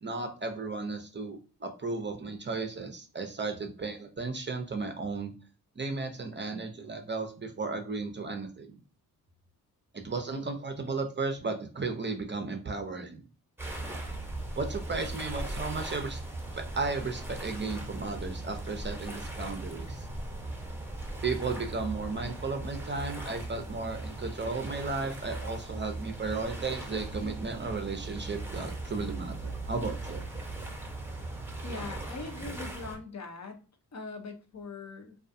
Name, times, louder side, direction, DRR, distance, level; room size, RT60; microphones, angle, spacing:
voice 1, 0.0-5.3 5.8-8.8 9.9-13.2 14.6-16.2 16.5-20.1 21.2-30.2, right 3 dB, 25° right, 5 dB, 0.6 m, -34 dB
sound 1, 13.6-33.0, right 2 dB, 5° right, 0.9 m, -38 dB
voice 2, 31.6-33.6 33.9-35.2, left 3 dB, 40° left, 4 dB, 0.8 m, -41 dB
2.3 x 2.3 x 2.6 m, 0.36 s
supercardioid pair, 50°, 41 cm